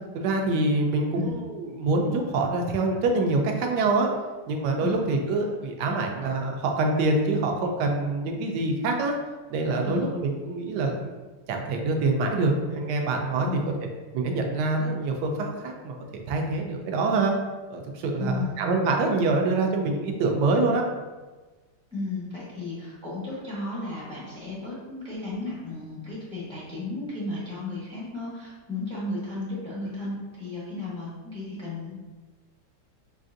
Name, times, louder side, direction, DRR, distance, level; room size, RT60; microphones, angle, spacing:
voice 1, 0.1-4.1 4.5-9.1 9.5-11.1 11.5-13.7 14.1-17.3 17.7-20.8, right 3 dB, 75° right, 2 dB, 1.0 m, -25 dB
voice 2, 1.1-1.4 4.8-5.1 9.8-10.1 13.4-13.7 18.2-18.6 21.9-32.0, left 3 dB, 5° left, -8 dB, 0.4 m, -34 dB
5.4 x 2.4 x 2.5 m, 1.3 s
omnidirectional pair, 2.0 m